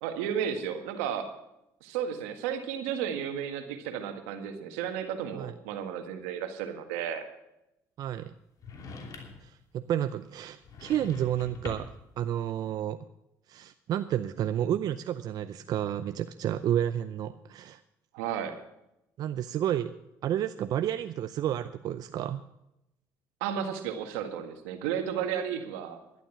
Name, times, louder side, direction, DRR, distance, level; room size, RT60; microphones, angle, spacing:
voice 1, 0.0-1.3 1.8-7.3 18.1-18.6 23.4-26.0, right 8 dB, 90° right, 7 dB, 1.7 m, -33 dB
voice 2, 8.0-8.3 9.4-11.9 12.2-13.0 13.5-17.8 19.2-20.0 20.2-22.4, right 11 dB, 60° right, 11 dB, 0.6 m, -31 dB
sound 1, 8.6-9.5 10.6-12.1, left 4 dB, 50° left, 2.9 m, -43 dB
11.5 x 11.5 x 5.9 m, 0.87 s
supercardioid pair, 80°, 7 cm